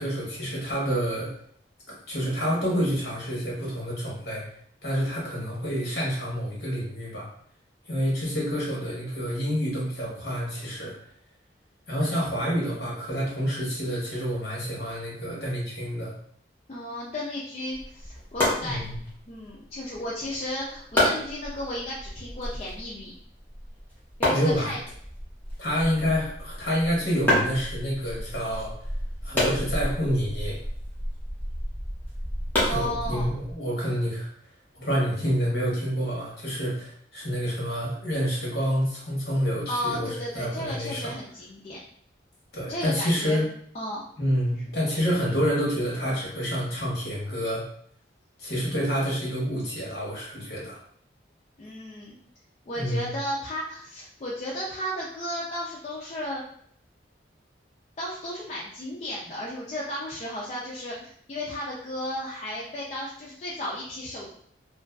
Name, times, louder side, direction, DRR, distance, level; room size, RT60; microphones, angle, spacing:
voice 1, 0.0-1.3 1.9-4.4 4.8-7.3 7.8-10.9 11.9-16.1 18.6-19.0 24.3-24.7 25.6-28.7 29.2-30.6 32.6-34.3 34.7-41.1 42.5-43.4 44.2-47.6 48.4-50.8 52.8-53.1, equal, 60° left, -4 dB, 1.0 m, -28 dB
voice 2, 16.7-18.9 19.3-23.1 24.2-24.8 32.6-33.3 39.7-41.8 42.7-43.5 43.7-44.0 51.6-52.2 52.7-56.4 58.0-64.3, left 1 dB, 35° left, -6 dB, 0.3 m, -34 dB
sound 1, 17.7-33.5, left 1 dB, 10° left, 0.8 m, -30 dB
2.5 x 2.2 x 2.2 m, 0.64 s
head